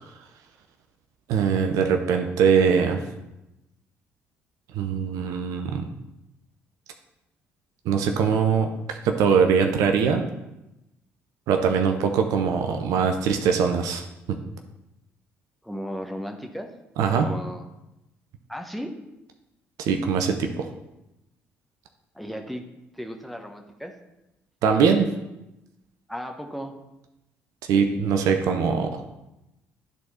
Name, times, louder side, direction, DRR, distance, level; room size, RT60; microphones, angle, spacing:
voice 1, 1.3-3.0 4.7-5.9 7.9-10.3 11.5-14.0 14.3-14.4 17.0-17.3 19.8-20.7 24.6-25.1 27.7-29.0, right 6 dB, 60° right, 5 dB, 0.7 m, -22 dB
voice 2, 15.6-16.7 17.1-17.6 18.5-18.9 22.1-22.6 22.9-23.9 26.1-26.7, equal, ahead, 4 dB, 1.2 m, -35 dB
12.0 x 4.2 x 4.3 m, 0.93 s
figure-of-eight pair, 45°, 6 cm